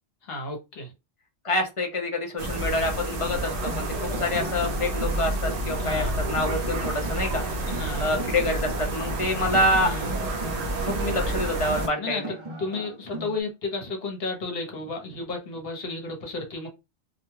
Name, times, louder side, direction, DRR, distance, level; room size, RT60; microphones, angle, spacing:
voice 1, 0.2-0.9 5.8-6.2 7.6-8.0 9.7-10.1 11.9-16.7, left 3 dB, 60° left, 2 dB, 1.0 m, -33 dB
voice 2, 1.4-7.4 8.0-9.9 10.9-12.2, left 1 dB, 45° left, 3 dB, 0.5 m, -27 dB
sound 1, 2.4-11.9, right 2 dB, 60° right, 0.8 m, -29 dB
sound 2, 3.5-13.4, right 1 dB, 40° right, 0.4 m, -38 dB
2.3 x 2.2 x 3.1 m, 0.25 s
omnidirectional pair, 1.2 m